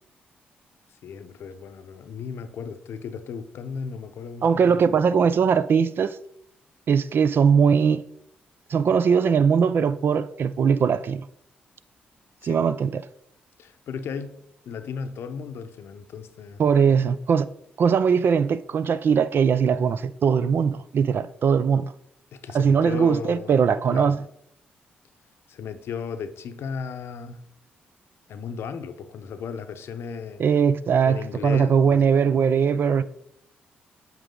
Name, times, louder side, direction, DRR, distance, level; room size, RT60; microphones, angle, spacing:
voice 1, 1.0-4.8 12.4-12.6 13.6-16.6 22.3-23.6 23.9-24.2 25.5-27.4 28.3-30.4 31.0-32.1, left 6 dB, 70° left, 0.7 m, -35 dB
voice 2, 4.4-6.2 6.9-8.0 8.7-11.3 12.4-13.0 16.6-17.5 17.8-21.9 22.5-24.2 30.4-33.0, right 6 dB, 60° right, 0.4 m, -20 dB
8.1 x 4.8 x 3.8 m
hypercardioid pair, 45°, 4 cm